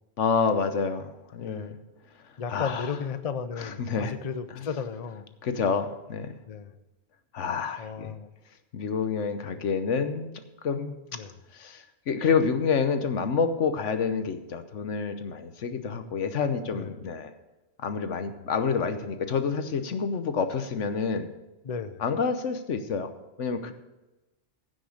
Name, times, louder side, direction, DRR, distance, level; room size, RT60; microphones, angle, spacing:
voice 1, 0.2-1.7 2.5-2.9 3.6-4.1 4.6-4.7 5.4-6.3 7.3-8.1 8.7-10.3 10.6-10.9 11.5-17.3 17.8-21.3 22.0-23.1 23.4-23.7, left 5 dB, 75° left, 9 dB, 1.3 m, -28 dB
voice 2, 1.4-1.8 2.4-5.3 6.5-6.7 7.8-8.3 11.1-11.3 16.7-17.0 21.6-22.0, left 6 dB, 40° left, 11 dB, 0.6 m, -34 dB
15.5 x 6.0 x 6.4 m, 1.0 s
omnidirectional pair, 1.3 m